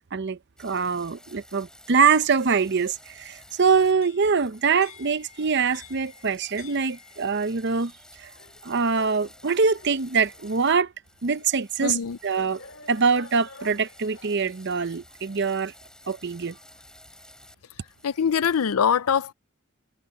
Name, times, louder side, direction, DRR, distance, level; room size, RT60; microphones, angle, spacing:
voice 1, 0.1-7.9 8.2-8.3 8.6-10.9 11.2-12.6 12.9-15.7 16.1-16.6, right 5 dB, 50° right, 0.7 m, -24 dB
sound 1, 0.6-3.9 4.2-10.7 11.0-17.5 17.9-18.8, left 1 dB, 5° left, 4.7 m, -52 dB
sound 2, 3.9-7.5 8.3-10.7 11.4-11.5 12.5-14.5, left 4 dB, 60° left, 2.2 m, -49 dB
voice 2, 11.8-12.2 18.0-19.3, left 7 dB, 80° left, 0.5 m, -23 dB
head